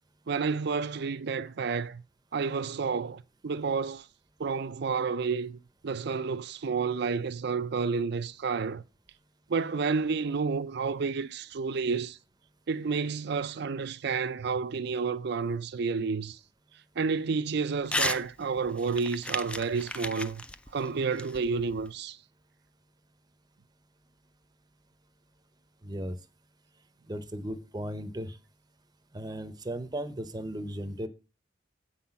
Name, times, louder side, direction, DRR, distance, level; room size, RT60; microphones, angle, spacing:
voice 1, 0.3-2.0 2.3-4.1 4.4-5.6 5.8-8.8 9.5-12.2 12.7-16.4 17.0-20.4 20.7-22.2, right 5 dB, 60° right, 0.5 m, -30 dB
Crumpling crinkling / Tearing, 17.9-18.2 18.6-21.9, left 1 dB, 5° left, 0.4 m, -34 dB
voice 2, 25.8-26.2 27.1-28.4 29.1-31.1, right 1 dB, 20° right, 0.7 m, -36 dB
8.3 x 5.7 x 5.7 m
head